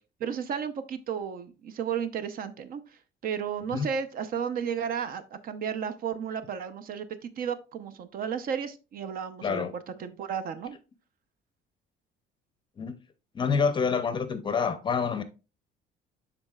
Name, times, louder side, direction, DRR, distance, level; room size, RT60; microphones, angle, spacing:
voice 1, 0.2-2.8 3.2-9.6 10.0-10.8, right 7 dB, 50° right, 0.7 m, -33 dB
voice 2, 9.4-9.7 12.8-12.9 13.3-15.2, left 5 dB, 25° left, 0.6 m, -27 dB
12.0 x 4.1 x 2.3 m
cardioid pair, 175°, 19 cm